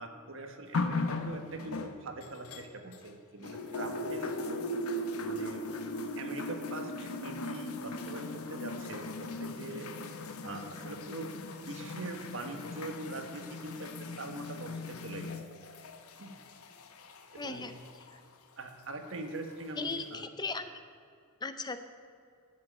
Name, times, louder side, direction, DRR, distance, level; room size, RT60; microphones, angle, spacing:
voice 1, 0.0-4.6 5.2-5.6 6.2-9.9 10.4-15.3 16.2-16.3 17.3-17.6 18.6-20.3, right 2 dB, 65° right, 5 dB, 1.4 m, -42 dB
sound 1, 0.7-3.1 3.4-18.2 19.0-19.1, left 2 dB, 85° left, 0.9 m, -38 dB
voice 2, 17.4-17.7 18.1-18.2 19.8-20.8 21.4-21.8, left 4 dB, 20° left, 10 dB, 0.5 m, -37 dB
12.0 x 7.7 x 8.6 m, 2.4 s
head